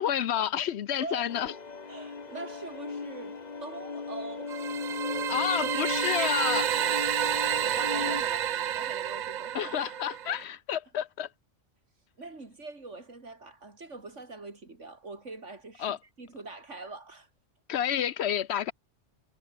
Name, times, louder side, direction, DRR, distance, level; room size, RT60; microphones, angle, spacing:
voice 1, 0.0-1.5 5.3-6.7 9.5-11.3 15.8-16.0 17.7-18.7, left 9 dB, 65° left, 1.0 m, -29 dB
voice 2, 1.0-1.3 1.9-4.8 7.3-9.8 12.2-17.3, right 3 dB, 80° right, 4.1 m, -43 dB
sound 1, 1.3-8.2, left 4 dB, 35° left, 1.3 m, -37 dB
sound 2, 4.5-10.4, right 10 dB, 60° right, 0.4 m, -30 dB
omnidirectional pair, 1.2 m